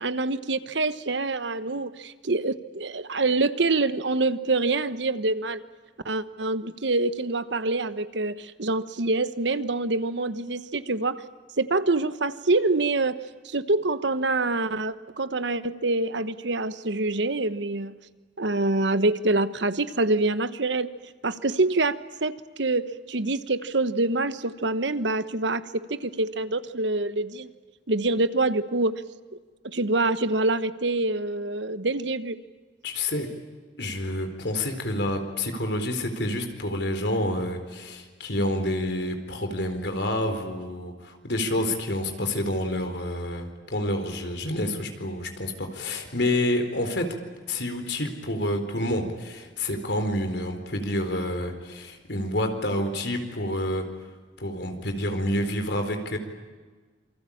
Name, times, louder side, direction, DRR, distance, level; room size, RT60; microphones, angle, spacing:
voice 1, 0.0-5.6 6.0-11.2 11.6-13.2 13.4-17.9 18.4-20.9 21.2-22.0 22.2-27.5 27.9-28.9 29.6-32.4, right 2 dB, 75° right, 12 dB, 1.2 m, -26 dB
voice 2, 32.8-33.3 33.8-47.1 47.5-53.8 54.4-56.2, left 1 dB, 65° left, 6 dB, 4.3 m, -28 dB
27.5 x 24.5 x 8.6 m, 1.4 s
head